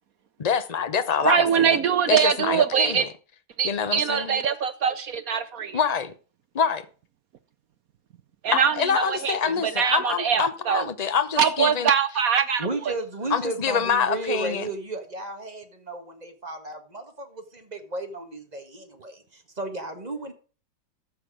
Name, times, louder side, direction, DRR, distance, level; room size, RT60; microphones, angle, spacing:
voice 1, 0.4-1.8 2.1-3.1 3.6-4.4 5.7-6.1 6.5-6.8 8.5-11.9 13.3-14.7, left 6 dB, 50° left, 0.4 m, -26 dB
voice 2, 1.2-3.0 3.6-5.8 8.4-9.3 9.8-10.8 11.4-12.6, right 7 dB, 65° right, 0.9 m, -22 dB
voice 3, 12.6-20.3, right 2 dB, 25° right, 1.7 m, -34 dB
14.0 x 6.3 x 4.9 m
omnidirectional pair, 2.0 m